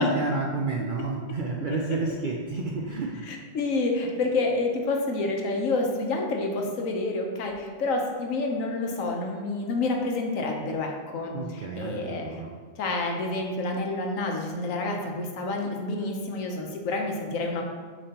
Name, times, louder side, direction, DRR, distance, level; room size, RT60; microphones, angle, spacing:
voice 1, 0.0-3.3 11.3-12.6, right 3 dB, 65° right, 1 dB, 0.5 m, -30 dB
voice 2, 1.7-2.1 3.3-12.3 12.8-17.6, left 2 dB, 85° left, 2 dB, 1.2 m, -28 dB
7.0 x 5.2 x 2.9 m, 1.5 s
omnidirectional pair, 1.3 m